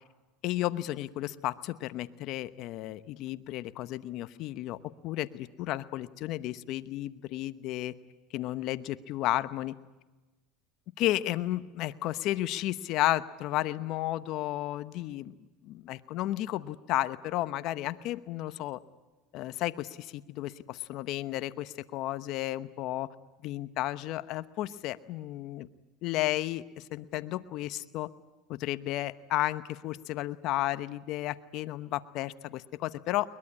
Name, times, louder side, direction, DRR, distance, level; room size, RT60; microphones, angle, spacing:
voice 1, 0.4-4.8 5.0-7.9 8.3-9.7 11.0-15.4 15.6-18.8 19.3-23.1 23.4-25.7 26.0-28.1 28.5-33.3, left 15 dB, 55° left, 13 dB, 0.9 m, -33 dB
22.0 x 20.5 x 9.8 m, 1.2 s
supercardioid pair, 120°, 0 cm